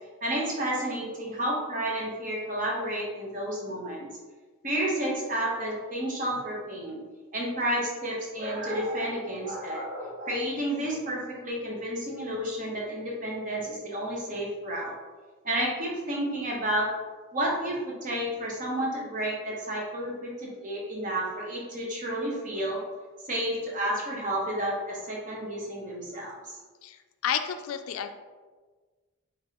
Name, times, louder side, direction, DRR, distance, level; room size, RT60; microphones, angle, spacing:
voice 1, 0.2-4.1 4.6-7.0 7.3-14.9 15.4-16.9 17.3-22.8 23.3-26.5, right 1 dB, 35° right, -3 dB, 0.8 m, -31 dB
voice 2, 27.2-28.1, left 8 dB, 75° left, 9 dB, 0.3 m, -30 dB
5.2 x 2.5 x 2.8 m, 1.4 s
head